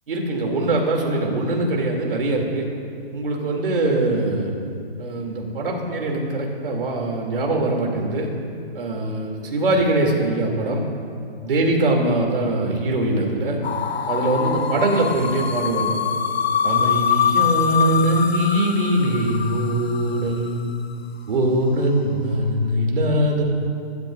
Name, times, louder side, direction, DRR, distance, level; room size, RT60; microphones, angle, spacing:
voice 1, 0.1-2.6 3.1-4.5 5.0-8.3 8.7-10.8 11.4-13.6 14.1-15.9 16.6-20.7 21.3-23.4, right 1 dB, 60° right, 0 dB, 3.0 m, -22 dB
sound 1, 13.6-20.6, left 7 dB, 75° left, 0.9 m, -24 dB
21.0 x 12.5 x 2.6 m, 2.4 s
hypercardioid pair, 155°, 31 cm